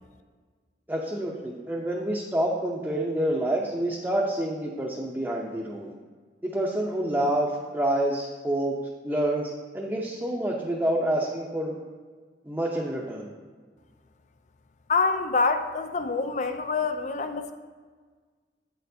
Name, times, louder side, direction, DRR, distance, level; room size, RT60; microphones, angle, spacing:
voice 1, 0.9-5.9 6.4-8.8 9.0-11.8 12.5-13.3, right 1 dB, 10° right, -4 dB, 0.6 m, -28 dB
voice 2, 14.9-17.5, left 4 dB, 40° left, 9 dB, 0.4 m, -26 dB
8.3 x 6.6 x 2.7 m, 1.5 s
head